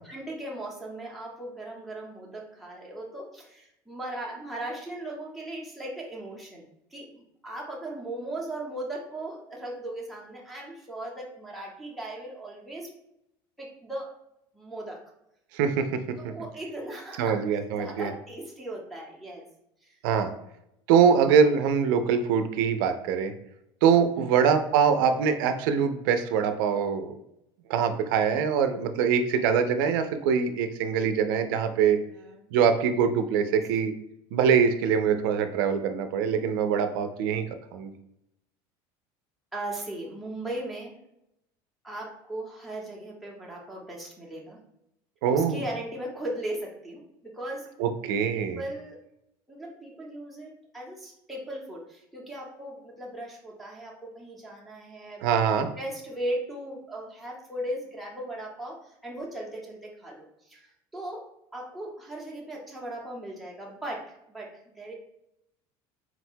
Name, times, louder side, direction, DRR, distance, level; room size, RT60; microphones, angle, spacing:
voice 1, 0.0-12.9 13.6-14.1 14.5-15.0 16.2-19.5 19.8-19.9 24.2-24.4 31.7-32.7 39.5-40.9 41.8-44.6 45.3-47.7 48.0-49.0 49.5-55.2 55.6-61.2 61.5-64.0 64.3-64.9, right 1 dB, ahead, -4 dB, 0.7 m, -38 dB
voice 2, 15.5-16.0 17.2-18.1 20.0-20.3 20.9-23.3 23.8-27.1 27.7-32.0 32.5-33.9 34.3-37.4 37.7-37.9 45.2-45.6 47.8-48.6 55.2-55.7, right 7 dB, 90° right, 8 dB, 0.5 m, -23 dB
4.0 x 2.2 x 4.4 m, 0.82 s
cardioid pair, 170°, 11 cm